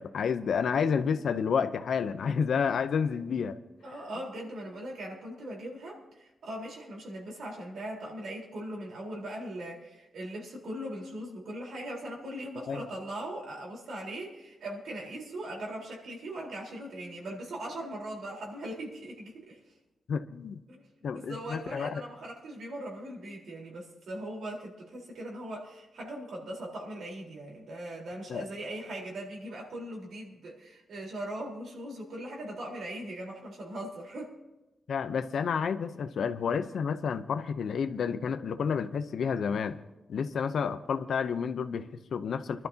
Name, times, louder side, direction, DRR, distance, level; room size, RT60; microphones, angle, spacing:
voice 1, 0.0-3.6 12.7-12.8 20.1-20.6 21.0-22.0 28.3-28.4 34.9-39.8 40.1-42.7, left 6 dB, 75° left, 11 dB, 0.7 m, -30 dB
voice 2, 3.8-19.6 20.7-20.9 21.1-34.4, right 1 dB, 80° right, -2 dB, 4.1 m, -40 dB
25.0 x 12.0 x 2.9 m, 1.0 s
cardioid pair, 70°, 0 cm